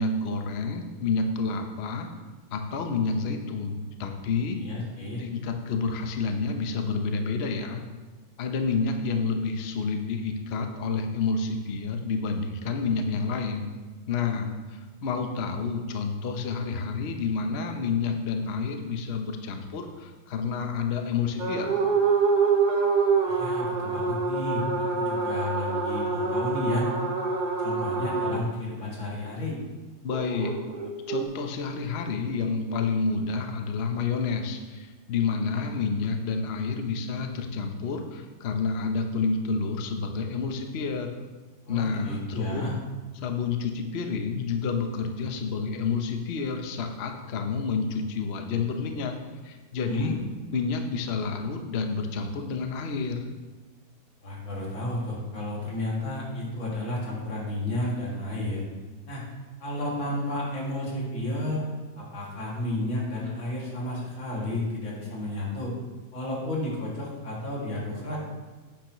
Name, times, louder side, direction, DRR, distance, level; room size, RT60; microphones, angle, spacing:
voice 1, 0.0-2.1 2.5-4.6 5.2-7.8 8.4-13.7 14.1-21.7 30.0-30.6 31.1-41.1 41.7-42.6 43.2-49.1 49.4-50.2 50.5-53.2, left 4 dB, 50° left, 5 dB, 0.7 m, -29 dB
voice 2, 4.6-5.2 23.2-27.0 27.6-29.6 41.6-42.7 49.8-50.1 54.2-58.6 59.1-59.2 59.6-61.7 62.0-65.8 66.1-68.2, left 1 dB, 85° left, -4 dB, 3.1 m, -32 dB
sound 1, 21.4-28.4 30.1-31.2, right 4 dB, 40° right, 0.6 m, -26 dB
10.0 x 9.0 x 3.1 m, 1.3 s
omnidirectional pair, 2.1 m